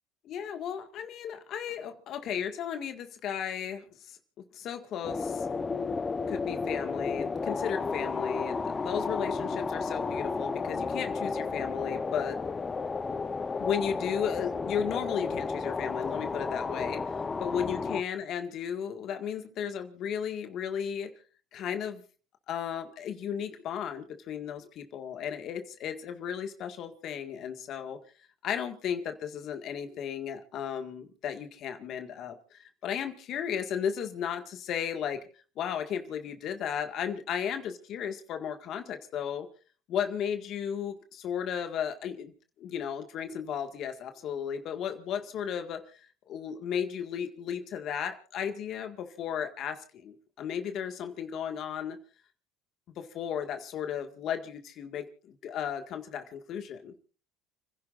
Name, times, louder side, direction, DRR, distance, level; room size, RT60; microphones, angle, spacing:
voice 1, 0.2-5.5 6.3-12.4 13.6-17.1 17.4-21.1 21.5-22.0 22.5-28.0 28.4-35.2 35.6-39.5 39.9-42.3 42.6-46.0 46.3-52.0 53.0-56.9, left 8 dB, 55° left, 6 dB, 1.8 m, -35 dB
sound 1, 5.0-18.0, left 4 dB, 25° left, 0.9 m, -32 dB
30.0 x 11.0 x 2.5 m, 0.39 s
supercardioid pair, 95°, 0 cm